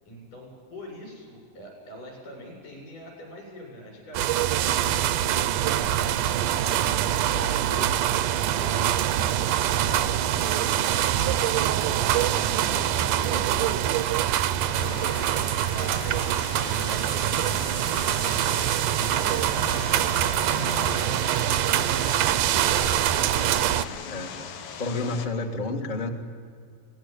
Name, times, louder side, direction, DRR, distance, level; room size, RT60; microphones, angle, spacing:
voice 1, 0.0-7.9 8.6-9.0 9.6-12.3 12.7-14.2 14.5-18.4 18.8-23.0, equal, 65° left, 0 dB, 9.2 m, -44 dB
sound 1, 4.1-23.8, right 11 dB, 75° right, 2.1 m, -24 dB
voice 2, 12.5-12.8 13.1-13.8 24.0-24.3 24.8-26.1, left 3 dB, 25° left, 2 dB, 1.1 m, -31 dB
Vehicle, 14.8-25.3, left 7 dB, 80° left, 3.3 m, -39 dB
23.5 x 19.0 x 8.4 m, 2.2 s
omnidirectional pair, 4.1 m